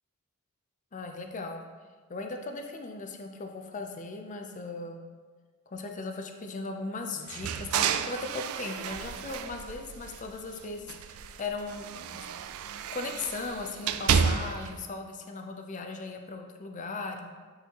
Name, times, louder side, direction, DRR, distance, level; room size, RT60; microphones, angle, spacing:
voice 1, 0.9-1.6 2.1-5.0 5.7-12.3 12.9-17.3, left 3 dB, 35° left, 4 dB, 0.5 m, -38 dB
sound 1, 7.3-10.5 10.8-14.8, right 7 dB, 70° right, 0.3 m, -31 dB
8.2 x 4.1 x 2.9 m, 1.5 s
head